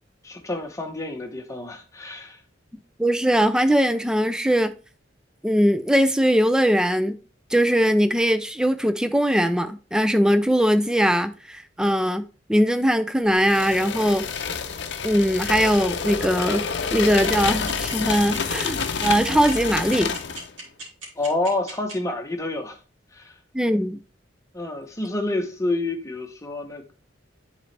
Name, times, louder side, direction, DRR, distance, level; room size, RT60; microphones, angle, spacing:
voice 1, 0.2-2.4 21.2-22.8 23.1-23.3 24.5-26.9, left 2 dB, 15° left, 1.0 m, -28 dB
voice 2, 3.0-4.7 5.4-7.2 7.5-12.2 12.5-14.2 15.0-16.6 16.9-20.1 23.5-24.0, equal, 5° right, 0.4 m, -20 dB
sound 1, 13.4-20.5, left 5 dB, 60° left, 0.7 m, -28 dB
sound 2, 17.2-21.9, right 3 dB, 75° right, 2.6 m, -36 dB
9.6 x 4.1 x 3.3 m
head